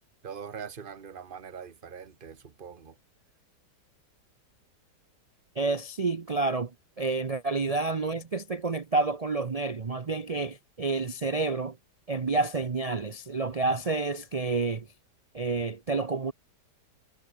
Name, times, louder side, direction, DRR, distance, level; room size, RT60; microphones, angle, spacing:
voice 1, 0.2-3.0, right 7 dB, 30° right, 1.5 m, -42 dB
voice 2, 5.5-11.8 12.1-14.9 15.3-16.3, right 3 dB, 70° right, 0.3 m, -29 dB
omnidirectional pair, 1.9 m